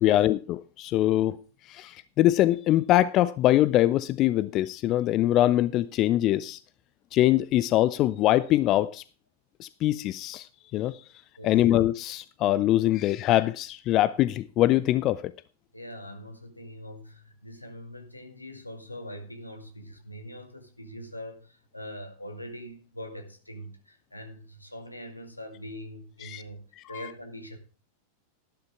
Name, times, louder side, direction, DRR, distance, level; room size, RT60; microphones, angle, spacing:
voice 1, 0.0-1.4 1.7-6.6 7.1-9.0 9.6-11.0 11.4-15.3 26.2-26.4 26.9-27.0, left 14 dB, 35° left, 0.5 m, -23 dB
voice 2, 15.7-27.6, equal, 85° left, 2.2 m, -42 dB
12.5 x 11.5 x 3.6 m
figure-of-eight pair, 90°, 0 cm